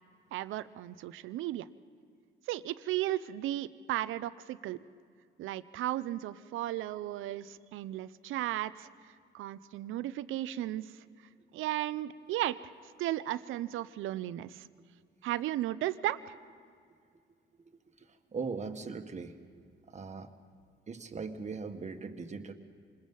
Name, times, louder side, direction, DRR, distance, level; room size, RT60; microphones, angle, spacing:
voice 1, 0.3-1.7 2.5-4.8 5.4-8.9 9.3-11.0 11.5-12.7 13.0-14.7 15.2-16.3, right 14 dB, 85° right, 15 dB, 0.7 m, -35 dB
voice 2, 18.3-19.3 19.9-20.3 20.9-22.5, right 4 dB, 35° right, 6 dB, 1.7 m, -39 dB
27.0 x 21.0 x 5.6 m, 2.2 s
cardioid pair, 90°, 20 cm